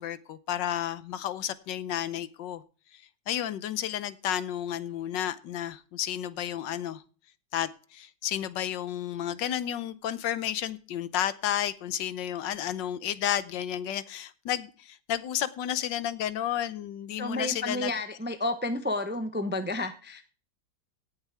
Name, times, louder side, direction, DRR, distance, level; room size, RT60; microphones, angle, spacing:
voice 1, 0.0-2.6 2.9-7.0 7.5-17.9, left 11 dB, 85° left, 15 dB, 1.5 m, -32 dB
voice 2, 17.2-20.2, left 2 dB, 10° right, 8 dB, 0.5 m, -31 dB
17.5 x 7.3 x 3.5 m, 0.37 s
omnidirectional pair, 1.9 m